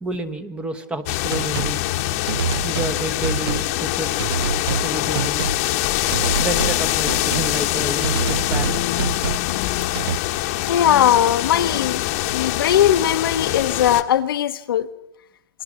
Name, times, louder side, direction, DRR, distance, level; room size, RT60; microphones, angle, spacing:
voice 1, 0.0-1.9 2.6-4.2 4.6-5.5 6.4-8.8, right 2 dB, 10° right, 1.1 m, -30 dB
sound 1, 1.1-14.0, left 16 dB, 40° left, 1.1 m, -24 dB
sound 2, 1.3-1.8 2.3-2.9 3.2-3.7 4.2-4.9 5.1-5.6 6.1-6.8 7.1-7.5 8.0-9.5 10.0-10.2, right 6 dB, 80° right, 0.7 m, -26 dB
voice 2, 10.7-14.9, left 10 dB, 65° left, 0.9 m, -19 dB
28.0 x 21.5 x 6.2 m
hypercardioid pair, 150°, 13 cm